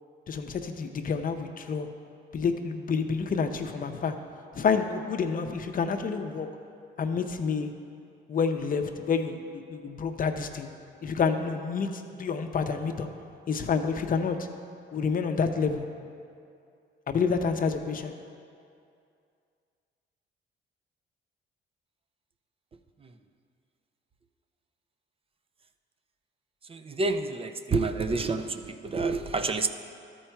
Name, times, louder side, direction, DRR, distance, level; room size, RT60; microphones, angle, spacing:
voice 1, 0.3-1.9 2.3-4.1 4.5-6.5 7.0-7.7 8.3-10.7 11.0-13.1 13.5-14.5 14.9-15.9 17.1-18.1, left 5 dB, 45° left, 7 dB, 0.6 m, -28 dB
voice 2, 26.7-29.7, right 3 dB, 30° right, 8 dB, 0.4 m, -28 dB
12.5 x 4.5 x 4.5 m, 2.4 s
cardioid pair, 90°, 20 cm